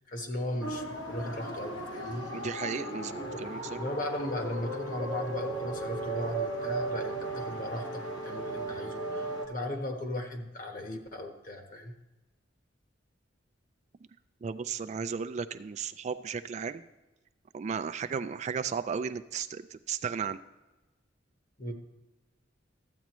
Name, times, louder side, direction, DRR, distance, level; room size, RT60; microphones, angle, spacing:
voice 1, 0.1-2.2 3.2-11.9 21.6-21.7, left 1 dB, 45° left, 4 dB, 1.3 m, -37 dB
sound 1, 0.6-9.5, right 2 dB, 75° left, 1.5 m, -36 dB
voice 2, 2.3-3.8 14.4-16.8 17.5-20.4, right 6 dB, 35° right, 11 dB, 0.3 m, -35 dB
13.5 x 8.4 x 3.1 m, 1.1 s
head